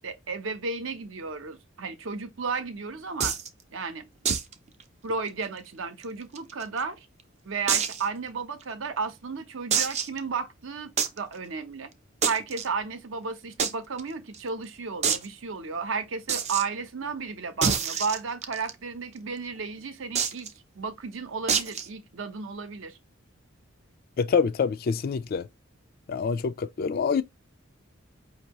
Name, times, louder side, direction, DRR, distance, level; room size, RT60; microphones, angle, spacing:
voice 1, 0.0-3.4 3.7-4.0 5.0-7.1 7.4-10.9 11.2-11.9 12.2-20.5 20.7-23.0, right 4 dB, 65° right, 0.7 m, -33 dB
sound 1, 3.2-3.5 4.3-4.5 4.8-4.9 5.3-5.4 6.0-6.8 7.7-8.0 8.6-8.7 9.7-10.2 11.0-11.2 12.2-12.7 13.6-13.7 14.0-14.1 14.3-14.4 15.0-15.3 16.3-16.6 17.6-18.7 20.2-20.5 21.5-21.9, right 6 dB, 35° right, 0.5 m, -26 dB
voice 2, 24.2-25.5 26.1-27.2, left 5 dB, 45° left, 0.3 m, -26 dB
5.3 x 2.7 x 2.9 m
head